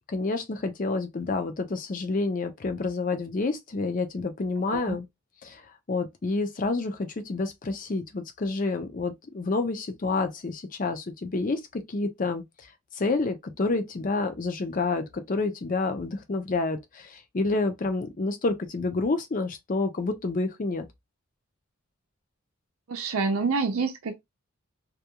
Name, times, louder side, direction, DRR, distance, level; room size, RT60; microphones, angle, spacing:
voice 1, 0.1-5.1 5.4-5.6 5.9-12.4 13.0-20.9, left 3 dB, 40° left, 0.5 m, -29 dB
voice 2, 22.9-24.2, right 4 dB, 80° right, 0.5 m, -27 dB
2.3 x 2.3 x 2.8 m
head